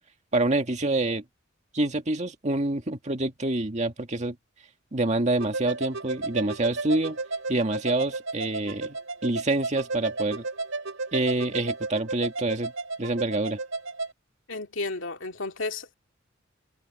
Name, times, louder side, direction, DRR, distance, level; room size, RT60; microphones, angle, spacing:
voice 1, 0.3-1.2 1.7-4.4 4.9-7.2 7.5-9.0 9.2-10.4 11.1-12.7 13.0-13.6, right 2 dB, 35° right, 1.9 m, -26 dB
sound 1, 5.4-14.1, right 3 dB, 80° right, 4.2 m, -33 dB
voice 2, 14.5-15.9, left 3 dB, 70° left, 2.7 m, -33 dB
head